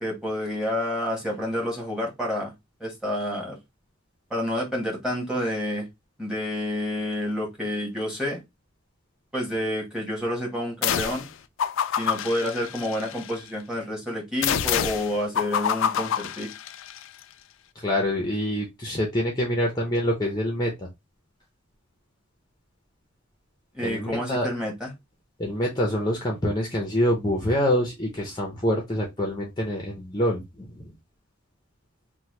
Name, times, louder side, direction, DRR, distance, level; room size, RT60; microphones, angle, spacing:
voice 1, 0.0-2.5 2.8-3.6 4.3-5.9 6.2-8.4 9.3-11.3 12.0-16.5 23.7-24.9, left 1 dB, 5° right, 1.1 m, -29 dB
sound 1, 10.8-11.3 11.6-13.3 14.4-17.0, left 8 dB, 70° left, 0.3 m, -27 dB
voice 2, 17.8-20.9 23.8-24.5 25.4-30.8, equal, 20° left, 0.6 m, -26 dB
2.9 x 2.2 x 3.1 m
head